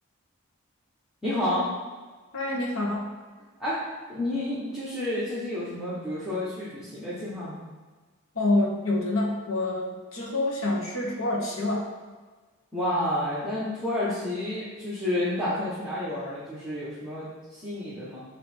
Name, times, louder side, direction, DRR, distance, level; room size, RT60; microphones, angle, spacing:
voice 1, 1.2-1.7 3.6-3.8 4.1-7.6 12.7-18.2, left 1 dB, ahead, -12 dB, 1.2 m, -30 dB
voice 2, 2.3-3.1 8.3-11.9, left 2 dB, 75° left, -2 dB, 1.3 m, -27 dB
7.9 x 3.0 x 4.4 m, 1.4 s
head